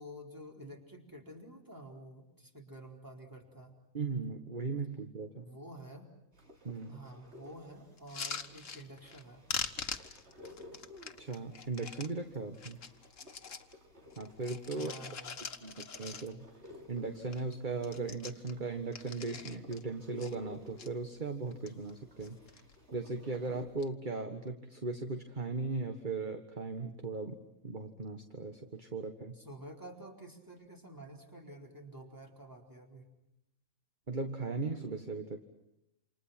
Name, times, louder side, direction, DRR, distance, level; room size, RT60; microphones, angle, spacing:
voice 1, 0.0-3.7 5.4-6.1 6.9-9.5 14.7-15.4 29.4-33.1, right 1 dB, 15° right, 1 dB, 4.4 m, -50 dB
voice 2, 3.9-5.5 6.6-7.0 11.2-12.8 14.2-14.9 15.6-16.5 16.9-22.4 22.9-27.4 27.6-29.4 34.1-35.4, right 3 dB, 35° right, 6 dB, 1.8 m, -38 dB
sound 1, 6.3-23.6, left 2 dB, 50° right, 3.8 m, -56 dB
sound 2, 8.0-9.2 9.5-12.1 12.5-13.7 14.1-16.6 16.9-17.0 17.2-17.5 17.8-19.8 20.2-20.9 21.4-21.9 22.2-22.8 23.6-23.9, left 5 dB, 65° left, 1.8 m, -43 dB
29.0 x 27.5 x 5.9 m, 0.84 s
omnidirectional pair, 1.4 m